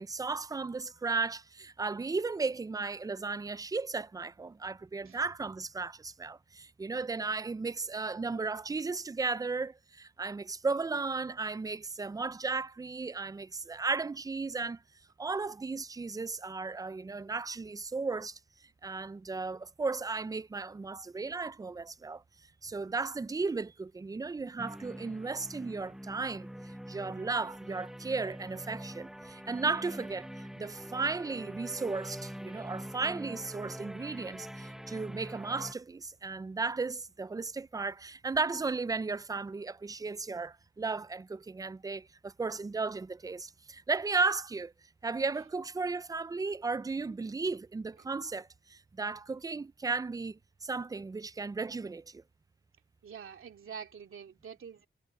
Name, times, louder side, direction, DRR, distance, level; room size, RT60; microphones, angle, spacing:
voice 1, 0.0-14.8 15.2-18.4 18.8-22.2 22.6-44.7 45.0-52.2, right 4 dB, 20° right, 0.3 m, -35 dB
sound 1, 24.6-35.7, equal, ahead, 1.0 m, -44 dB
voice 2, 53.0-54.9, right 7 dB, 80° right, 2.6 m, -46 dB
wide cardioid pair, 150°, 21 cm